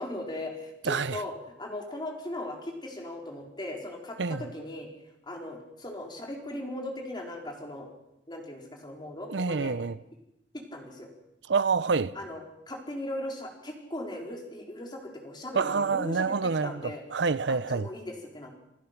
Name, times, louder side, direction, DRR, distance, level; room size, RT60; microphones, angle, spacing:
voice 1, 0.0-4.9 5.2-7.9 8.3-9.7 10.5-11.1 12.1-12.4 12.7-16.3 16.6-17.0 17.5-18.6, left 1 dB, 25° left, 4.3 m, -38 dB
voice 2, 0.8-1.2 4.2-4.5 9.3-10.0 11.5-12.1 15.6-17.9, right 4 dB, 70° right, 0.6 m, -27 dB
28.5 x 16.0 x 6.0 m
head